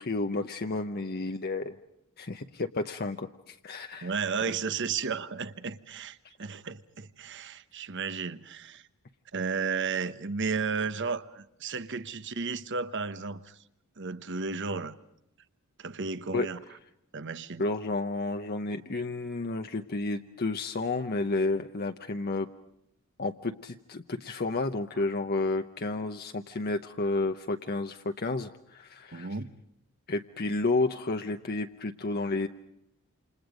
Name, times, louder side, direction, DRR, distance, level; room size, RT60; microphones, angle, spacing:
voice 1, 0.0-1.7 2.2-4.1 16.3-16.5 17.6-22.5 23.2-29.3 30.1-32.5, left 2 dB, 45° left, 0.8 m, -31 dB
voice 2, 4.0-8.8 9.3-13.6 14.0-14.9 15.8-16.6 17.1-17.6 29.1-29.5, right 5 dB, 55° right, 1.1 m, -33 dB
28.5 x 27.5 x 5.2 m
head